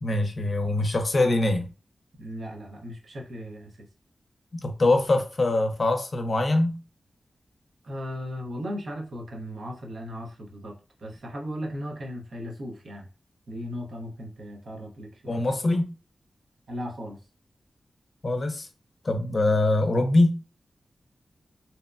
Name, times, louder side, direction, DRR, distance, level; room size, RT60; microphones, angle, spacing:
voice 1, 0.0-1.7 4.5-6.8 15.3-15.9 18.2-18.7 19.0-20.4, left 2 dB, 50° left, 0.5 m, -23 dB
voice 2, 2.2-3.9 7.8-13.1 13.5-15.4 16.7-17.2, equal, 75° right, 0.8 m, -37 dB
2.8 x 2.1 x 2.4 m
cardioid pair, 65°, 0 cm